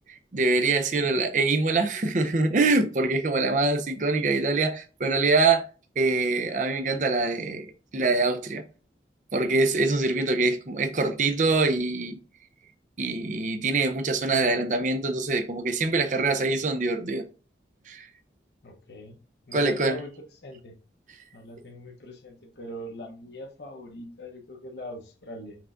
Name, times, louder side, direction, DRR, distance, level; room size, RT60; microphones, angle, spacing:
voice 1, 0.3-5.6 6.0-7.7 7.9-8.6 9.3-12.2 13.0-17.2 17.9-18.1 19.5-20.0, right 3 dB, 45° right, 0.5 m, -24 dB
voice 2, 18.6-19.2 19.5-20.7 21.3-25.6, left 1 dB, 75° left, 0.9 m, -41 dB
5.9 x 3.5 x 2.5 m
head